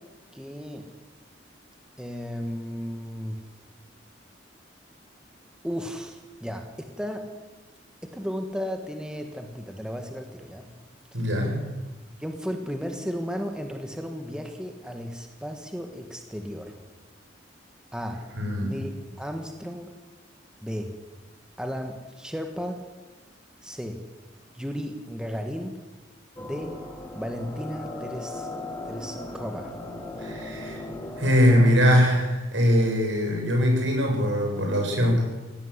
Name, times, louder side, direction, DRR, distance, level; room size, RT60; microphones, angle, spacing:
voice 1, 0.3-0.8 2.0-3.4 5.6-7.3 8.0-10.7 12.2-16.7 17.9-18.2 18.5-19.9 20.6-20.9 21.6-22.8 23.6-24.0 24.5-25.8 26.4-26.8 27.1-28.5 28.8-29.7, equal, 5° right, 4 dB, 1.6 m, -34 dB
voice 2, 11.1-11.6 18.4-18.8 30.2-30.8 31.2-35.2, equal, 75° right, 2 dB, 6.8 m, -22 dB
sound 1, 26.4-31.8, left 2 dB, 15° left, 3.2 m, -37 dB
18.0 x 17.5 x 8.2 m, 1.2 s
head